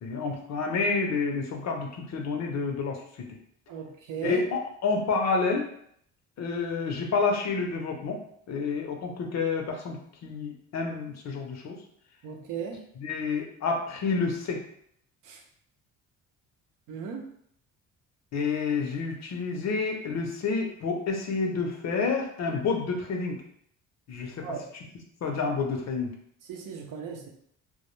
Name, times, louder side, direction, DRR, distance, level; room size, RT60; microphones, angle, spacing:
voice 1, 0.0-3.4 4.2-5.7 6.4-8.2 8.5-11.8 13.0-14.6 18.3-23.4 24.1-24.5 25.2-26.1, left 4 dB, 55° left, 2 dB, 0.6 m, -29 dB
voice 2, 3.7-4.4 12.2-12.8 15.2-15.4 16.9-17.3 24.4-24.7 26.5-27.3, right 6 dB, 70° right, 2 dB, 0.6 m, -36 dB
2.2 x 2.1 x 3.0 m, 0.68 s
cardioid pair, 85°, 33 cm